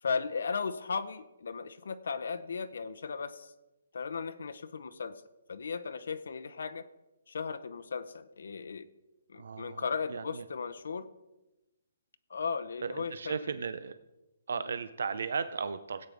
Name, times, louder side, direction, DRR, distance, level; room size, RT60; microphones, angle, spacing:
voice 1, 0.0-3.5 3.9-5.2 5.5-6.9 7.3-8.9 9.3-11.1 12.3-13.4 14.7-14.8, left 5 dB, 70° left, 11 dB, 0.7 m, -36 dB
voice 2, 9.3-10.4 12.8-14.0 14.5-16.1, right 5 dB, 65° right, 12 dB, 0.6 m, -36 dB
17.0 x 8.7 x 3.5 m, 1.0 s
hypercardioid pair, 175°, 0 cm